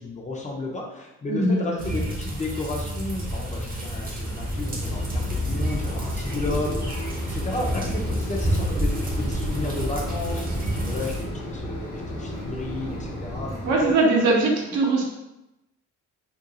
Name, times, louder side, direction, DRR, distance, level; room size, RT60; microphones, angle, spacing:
voice 1, 0.0-13.9, left 2 dB, 25° left, -1 dB, 0.5 m, -33 dB
voice 2, 1.3-1.6 13.6-15.0, right 2 dB, 75° right, -1 dB, 0.7 m, -20 dB
sound 1, 1.8-11.3, equal, 30° right, 0.7 m, -29 dB
Mechanisms, 3.1-14.0, equal, 85° left, 0.8 m, -35 dB
2.5 x 2.3 x 2.7 m, 0.94 s
cardioid pair, 90°, 30 cm